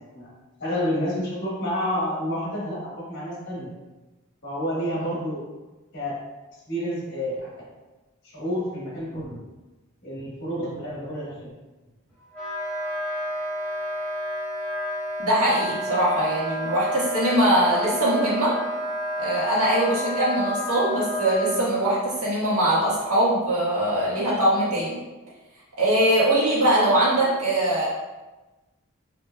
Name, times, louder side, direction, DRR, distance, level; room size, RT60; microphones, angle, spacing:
voice 1, 0.6-3.7 4.4-5.4 5.9-6.2 6.7-7.5 8.2-9.4 10.0-11.5, equal, 50° left, -6 dB, 1.4 m, -29 dB
Wind instrument woodwind instrument, 12.3-21.6, equal, 5° left, 1.2 m, -30 dB
voice 2, 15.2-18.5 19.2-25.0 25.8-27.9, right 1 dB, 90° right, -7 dB, 1.5 m, -22 dB
5.1 x 2.8 x 2.2 m, 1.1 s
head